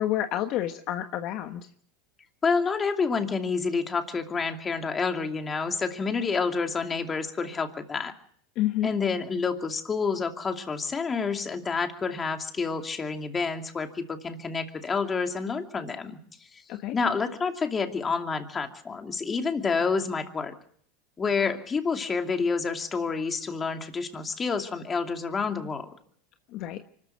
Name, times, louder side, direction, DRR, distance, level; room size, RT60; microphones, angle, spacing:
voice 1, 0.0-1.7 8.6-8.9 16.7-16.9 26.5-26.8, left 12 dB, 50° left, 7 dB, 1.3 m, -29 dB
voice 2, 2.4-8.1 8.8-16.6 16.9-20.5 21.2-25.9, left 5 dB, 25° left, 5 dB, 2.6 m, -29 dB
24.5 x 14.0 x 7.7 m, 0.64 s
hypercardioid pair, 105°, 0 cm